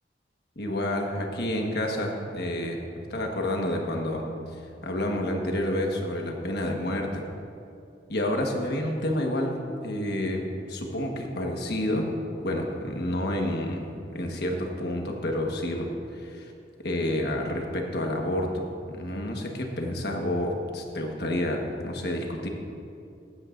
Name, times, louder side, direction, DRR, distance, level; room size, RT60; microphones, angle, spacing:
voice 1, 0.6-2.8 3.1-4.2 4.5-7.2 8.1-9.6 9.8-12.1 12.4-16.5 16.8-22.5, left 1 dB, 65° left, 2 dB, 1.4 m, -29 dB
15.0 x 12.5 x 2.6 m, 2.7 s
head